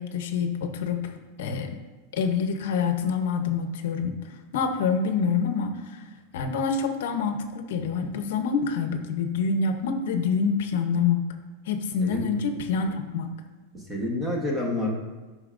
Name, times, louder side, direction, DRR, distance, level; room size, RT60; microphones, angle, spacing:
voice 1, 0.0-1.8 2.1-11.3 11.7-13.3, left 5 dB, 65° left, 6 dB, 0.7 m, -27 dB
voice 2, 13.7-14.9, left 1 dB, 10° right, -1 dB, 1.1 m, -28 dB
11.5 x 5.6 x 2.5 m, 1.3 s
supercardioid pair, 175°, 0 cm